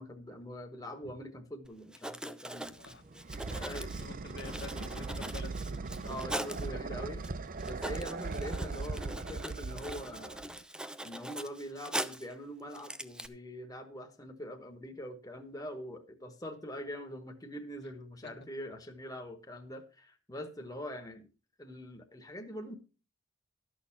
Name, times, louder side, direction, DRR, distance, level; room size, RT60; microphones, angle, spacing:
voice 1, 0.0-2.7 3.5-3.9 6.0-7.3 7.6-10.4 11.0-21.3 21.6-22.7, equal, 20° left, 4 dB, 1.1 m, -43 dB
Writing, 1.6-1.7 1.9-6.7 7.2-7.3 7.6-12.3 12.7-13.3, right 1 dB, 5° right, 0.6 m, -41 dB
sound 1, 2.7-10.6, right 3 dB, 45° right, 0.6 m, -39 dB
voice 2, 4.0-5.8 6.7-7.3 17.8-17.9, left 3 dB, 60° left, 6 dB, 1.4 m, -48 dB
12.5 x 6.5 x 5.7 m, 0.35 s
head